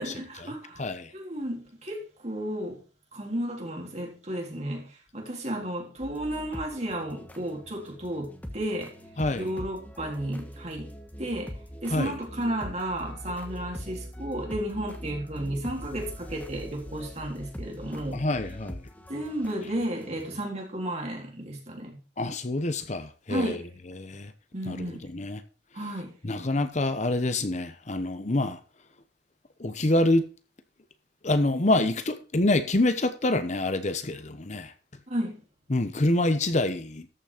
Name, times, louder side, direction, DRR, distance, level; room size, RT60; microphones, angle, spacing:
voice 1, 0.0-0.8 1.1-2.8 3.1-8.9 9.4-10.9 11.2-11.5 11.8-18.2 19.1-22.0 23.3-23.6 24.5-25.0 25.7-26.1 35.1-35.4, right 1 dB, 40° right, 3.6 m, -33 dB
voice 2, 0.8-1.1 9.2-9.5 11.9-12.1 18.1-18.8 22.2-23.6 23.9-24.3 24.7-25.4 26.2-28.6 29.6-30.3 31.2-34.7 35.7-37.1, left 2 dB, 40° left, 0.9 m, -26 dB
sound 1, 6.0-20.4, equal, 10° left, 1.4 m, -42 dB
13.5 x 6.1 x 5.1 m
head